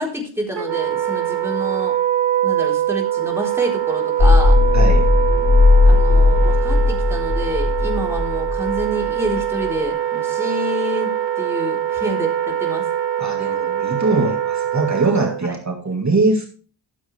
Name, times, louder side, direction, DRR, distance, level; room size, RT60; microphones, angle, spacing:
voice 1, 0.0-2.0 2.4-4.6 5.9-11.1 11.4-12.9 15.4-15.5, equal, 5° right, -1 dB, 3.9 m, -28 dB
Wind instrument woodwind instrument, 0.6-15.4, right 11 dB, 65° right, 1.0 m, -23 dB
sound 1, 4.2-9.6, left 3 dB, 70° left, 2.7 m, -15 dB
voice 2, 4.7-5.1 13.2-16.5, right 3 dB, 35° right, 2 dB, 2.0 m, -21 dB
14.0 x 7.2 x 3.4 m, 0.38 s
wide cardioid pair, 120°, 48 cm